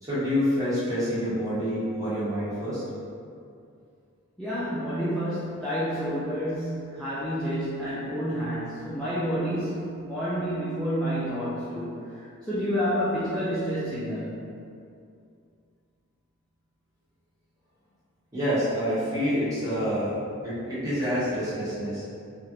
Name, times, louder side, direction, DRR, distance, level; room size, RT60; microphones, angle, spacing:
voice 1, 0.0-2.8 18.3-22.0, equal, 15° right, -12 dB, 1.0 m, -27 dB
voice 2, 4.4-14.4, equal, 5° left, -12 dB, 0.4 m, -29 dB
3.2 x 2.4 x 2.8 m, 2.4 s
head